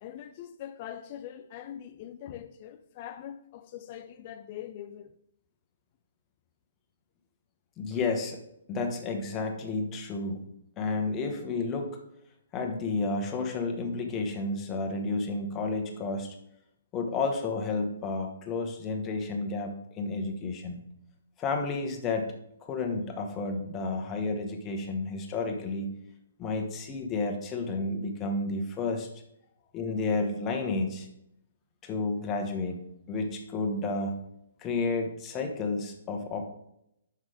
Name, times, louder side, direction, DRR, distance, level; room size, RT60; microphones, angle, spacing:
voice 1, 0.0-5.2 29.6-29.7, left 10 dB, 35° left, 0.4 m, -43 dB
voice 2, 7.8-8.4 8.7-10.5 10.8-12.0 12.5-16.3 16.9-20.8 21.4-25.9 26.4-29.1 29.7-31.1 31.8-32.8 33.1-34.1 34.6-36.5, left 3 dB, 15° left, 1.0 m, -31 dB
5.9 x 5.6 x 4.9 m
hypercardioid pair, 160°, 0 cm